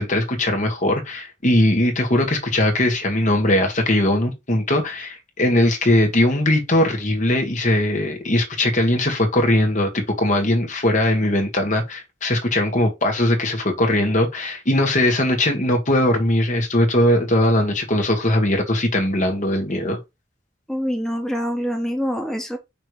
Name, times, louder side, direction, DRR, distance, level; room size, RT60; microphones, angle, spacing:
voice 1, 0.0-20.0, left 1 dB, 40° left, 1.8 m, -20 dB
voice 2, 20.7-22.6, equal, 5° left, 1.4 m, -25 dB
5.9 x 3.3 x 4.7 m
head